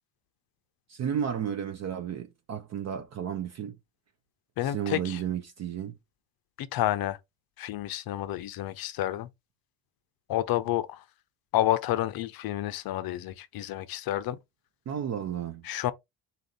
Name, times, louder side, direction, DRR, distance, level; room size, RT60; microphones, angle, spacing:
voice 1, 0.9-3.8 4.6-6.0 14.9-15.6, right 8 dB, 35° right, 0.5 m, -33 dB
voice 2, 4.6-5.2 6.6-7.2 7.6-9.3 10.3-11.0 11.5-14.4 15.6-15.9, left 13 dB, 50° left, 0.6 m, -29 dB
3.9 x 2.7 x 3.7 m
cardioid pair, 130°, 47 cm